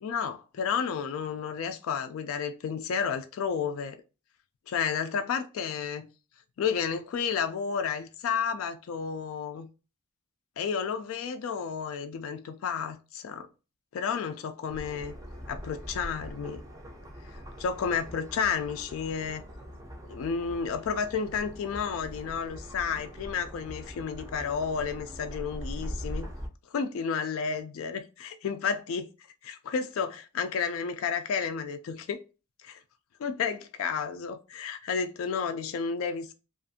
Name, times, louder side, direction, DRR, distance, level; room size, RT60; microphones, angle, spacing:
voice 1, 0.0-4.0 4.7-6.0 6.6-9.7 10.6-13.5 13.9-15.1 15.5-16.6 17.3-19.4 20.1-26.3 26.7-29.1 29.4-32.2 32.6-32.8 33.2-36.3, left 6 dB, 65° left, 0.3 m, -31 dB
sound 1, 14.7-26.5, equal, 15° right, 0.4 m, -42 dB
2.5 x 2.4 x 2.6 m
head